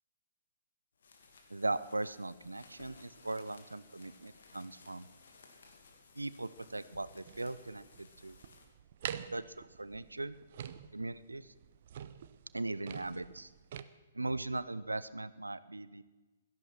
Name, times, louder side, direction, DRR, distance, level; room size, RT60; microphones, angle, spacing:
sound 1, 0.9-8.6, left 4 dB, 60° left, 2.6 m, -59 dB
voice 1, 1.5-5.1 6.2-8.4 9.3-10.3 10.9-11.5 12.5-13.5 14.1-16.0, right 2 dB, 80° right, 16 dB, 0.6 m, -39 dB
sound 2, 7.2-13.8, right 9 dB, 50° right, 0.8 m, -46 dB
17.0 x 13.5 x 6.1 m, 1.2 s
figure-of-eight pair, 120°, 0 cm